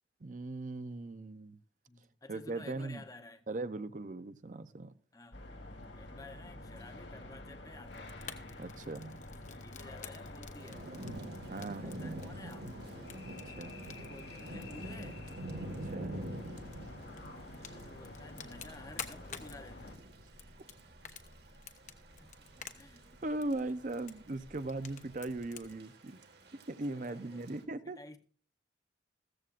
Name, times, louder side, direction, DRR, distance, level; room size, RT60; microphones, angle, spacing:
voice 1, 0.2-1.6 2.3-3.0 3.5-4.9 8.6-9.2 11.5-11.9 13.2-13.7 15.8-16.2 23.2-26.2 26.7-28.0, right 2 dB, 45° right, 12 dB, 0.5 m, -39 dB
voice 2, 1.9-3.5 5.1-5.4 6.0-8.2 9.5-10.8 11.5-12.8 13.9-15.2 17.6-20.1 22.2-22.3 22.8-23.1 26.9-27.5 27.8-28.2, left 2 dB, 20° left, 9 dB, 0.8 m, -53 dB
sound 1, 5.3-20.0, left 2 dB, 75° left, 2.1 m, -49 dB
Fire, 7.7-25.7, left 6 dB, 40° left, 1.1 m, -52 dB
Thunder / Rain, 10.6-27.6, right 1 dB, 60° right, 1.7 m, -47 dB
15.5 x 14.0 x 2.5 m, 0.40 s
head